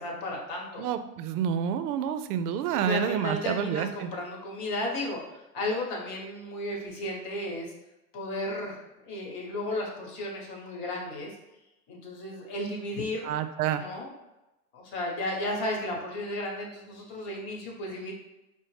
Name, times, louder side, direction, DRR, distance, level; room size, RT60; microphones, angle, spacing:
voice 1, 0.0-0.8 2.7-7.7 8.1-11.3 11.9-13.3 13.8-14.1 14.7-18.1, left 1 dB, 45° left, -1 dB, 1.1 m, -34 dB
voice 2, 0.8-4.1 13.2-13.8, right 8 dB, 70° right, 10 dB, 0.5 m, -29 dB
4.9 x 2.1 x 3.2 m, 0.97 s
hypercardioid pair, 110°, 48 cm